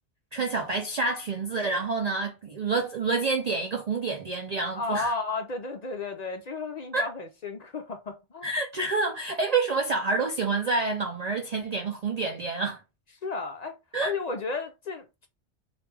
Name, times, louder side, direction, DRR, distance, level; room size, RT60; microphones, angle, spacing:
voice 1, 0.3-5.1 6.9-7.1 8.4-12.8 13.9-14.1, right 3 dB, 55° right, 0.4 m, -28 dB
voice 2, 4.7-8.5 13.2-15.3, left 4 dB, 50° left, 0.5 m, -33 dB
3.3 x 2.4 x 3.2 m
omnidirectional pair, 1.2 m